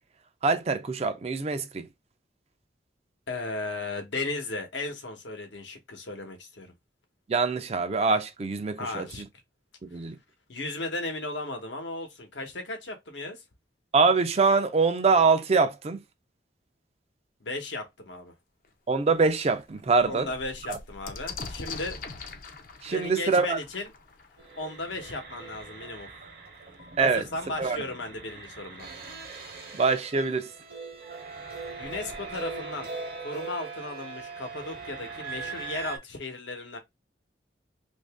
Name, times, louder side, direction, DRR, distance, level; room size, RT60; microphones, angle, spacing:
voice 1, 0.4-1.9 7.3-9.3 9.8-10.2 13.9-16.0 18.9-20.3 20.7-20.8 22.8-23.6 27.0-27.2 27.6-27.8 29.7-30.5, right 4 dB, 35° right, 0.4 m, -24 dB
voice 2, 3.3-6.7 8.8-9.2 10.5-13.4 17.4-18.3 20.0-22.0 22.9-23.9 24.5-26.1 27.0-28.9 31.8-32.9 33.2-36.8, left 2 dB, 85° left, 1.0 m, -35 dB
sound 1, 18.6-18.7 19.2-19.3 19.6-25.1 26.1-26.2 26.4-27.0, left 4 dB, 50° left, 0.5 m, -43 dB
sound 2, 24.4-36.0, right 4 dB, 55° right, 0.8 m, -41 dB
2.8 x 2.6 x 3.4 m
head